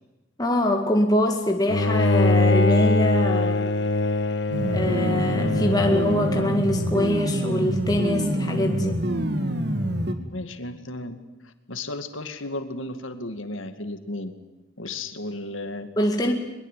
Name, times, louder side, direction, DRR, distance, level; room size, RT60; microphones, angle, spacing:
voice 1, 0.4-3.7 4.6-9.0 16.0-16.3, left 1 dB, 20° left, 3 dB, 2.1 m, -24 dB
Bowed string instrument, 1.7-6.9, left 2 dB, 65° left, 0.8 m, -23 dB
sound 1, 4.5-10.1, equal, 55° right, 2.3 m, -26 dB
voice 2, 10.3-11.2 11.4-14.3 14.8-15.9, left 2 dB, 90° left, 9 dB, 2.2 m, -34 dB
22.0 x 22.0 x 9.2 m, 1.0 s
head